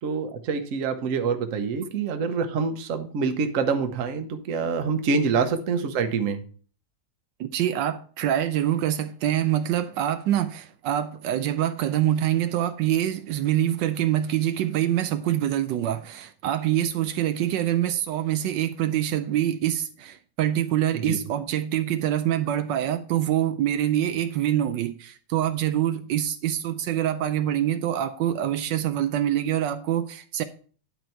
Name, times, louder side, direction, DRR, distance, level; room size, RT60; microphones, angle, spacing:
voice 1, 0.0-6.4 20.9-21.2, right 5 dB, 55° right, 1.1 m, -26 dB
voice 2, 7.4-30.4, right 11 dB, 80° right, 1.2 m, -25 dB
10.5 x 4.1 x 4.4 m
omnidirectional pair, 2.0 m